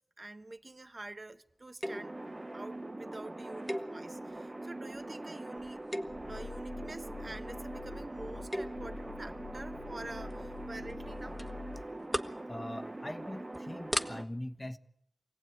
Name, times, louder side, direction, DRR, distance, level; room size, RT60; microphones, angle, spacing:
voice 1, 0.0-2.1 2.5-5.8 6.3-11.4, right 2 dB, 50° right, 1.1 m, -47 dB
sound 1, 1.8-2.2 3.7-4.4 4.9-5.2 5.8-6.4 8.3-8.9 10.3-10.6 10.9-11.0 11.4-11.5 11.9-12.4 12.8-13.1 13.5-13.6 13.9-14.1, equal, ahead, 1.5 m, -36 dB
sound 2, 1.8-14.2, right 2 dB, 30° right, 1.2 m, -43 dB
Growling, 5.6-11.9, left 4 dB, 70° left, 2.6 m, -47 dB
voice 2, 12.5-14.8, left 1 dB, 25° left, 1.2 m, -42 dB
25.0 x 17.5 x 9.2 m
wide cardioid pair, 55°, 0 cm